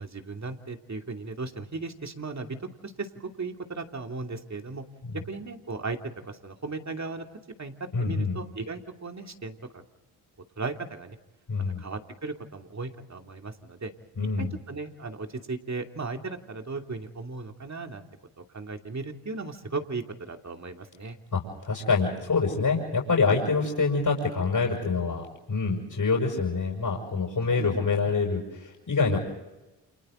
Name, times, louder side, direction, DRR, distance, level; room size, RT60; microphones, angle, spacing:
voice 1, 0.0-4.8 5.1-6.0 6.2-7.3 7.6-7.7 8.0-9.6 10.6-11.2 11.8-13.9 14.4-18.0 18.5-21.2 27.4-27.7, right 3 dB, 35° right, 4 dB, 2.8 m, -36 dB
voice 2, 7.9-8.4 11.5-11.8 14.2-14.5 21.3-29.2, left 4 dB, 45° left, 0 dB, 6.7 m, -26 dB
30.0 x 28.0 x 3.9 m, 1.0 s
supercardioid pair, 45°, 45 cm